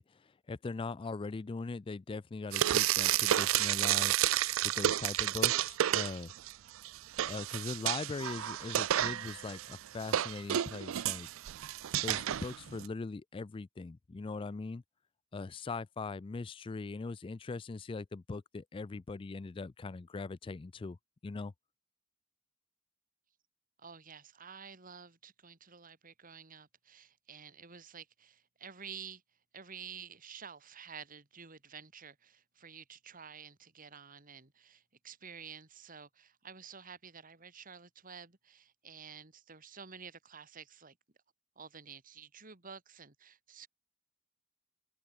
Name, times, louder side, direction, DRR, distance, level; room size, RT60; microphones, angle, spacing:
voice 1, 0.0-4.1 4.6-6.3 7.2-11.3 12.0-14.8 15.3-21.0 21.2-21.5, left 3 dB, 25° left, 0.3 m, -40 dB
Frying (food), 2.5-6.5 6.8-12.9, right 12 dB, 75° right, 0.4 m, -31 dB
voice 2, 23.8-29.2 29.5-41.0 41.6-43.7, right 6 dB, 40° right, 2.5 m, -50 dB
head